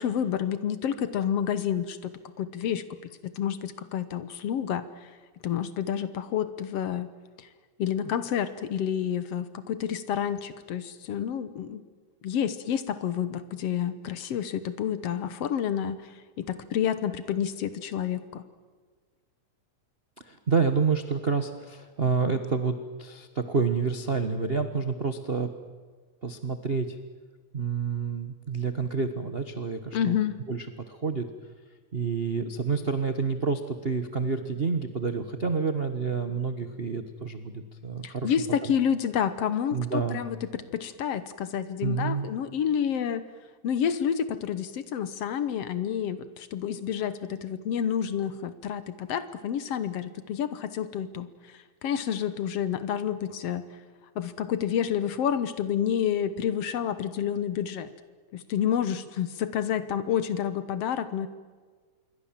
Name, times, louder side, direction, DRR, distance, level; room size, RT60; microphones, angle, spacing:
voice 1, 0.0-5.1 5.4-7.1 7.4-7.5 7.8-11.8 12.2-18.4 29.9-30.4 38.0-43.2 43.6-53.7 54.2-57.9 58.3-61.3, left 9 dB, 65° left, 14 dB, 2.0 m, -29 dB
voice 2, 20.2-25.5 26.2-27.0 27.5-30.1 30.5-31.3 31.9-38.3 39.7-40.2 41.8-42.3, right 5 dB, 65° right, 7 dB, 0.5 m, -28 dB
27.0 x 22.5 x 7.5 m, 1.5 s
omnidirectional pair, 3.3 m